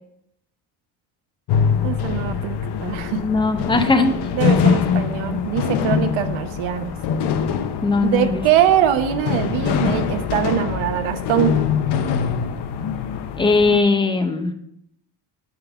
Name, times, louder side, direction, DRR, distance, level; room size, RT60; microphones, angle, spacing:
sound 1, 1.5-13.8, left 7 dB, 60° left, 0.9 m, -23 dB
voice 1, 1.8-2.6 2.8-3.2 4.3-6.9 8.0-11.6, right 11 dB, 85° right, 9 dB, 1.1 m, -22 dB
voice 2, 3.2-4.1 7.8-8.4 13.4-14.5, left 3 dB, 10° left, 5 dB, 0.7 m, -19 dB
10.5 x 3.8 x 7.0 m, 0.76 s
cardioid pair, 170°, 46 cm